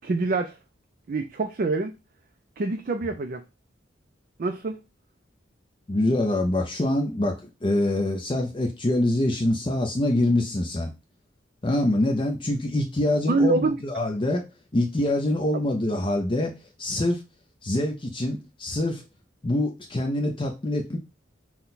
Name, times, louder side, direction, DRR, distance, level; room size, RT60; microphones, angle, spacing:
voice 1, 0.0-0.6 1.1-1.9 2.6-3.4 4.4-4.8 13.3-13.8, right 3 dB, 45° right, 0.4 m, -25 dB
voice 2, 5.9-10.9 11.6-14.4 14.7-16.5 16.8-17.2 17.6-19.0 19.4-21.0, left 1 dB, 25° left, 0.5 m, -25 dB
5.9 x 2.2 x 4.0 m
head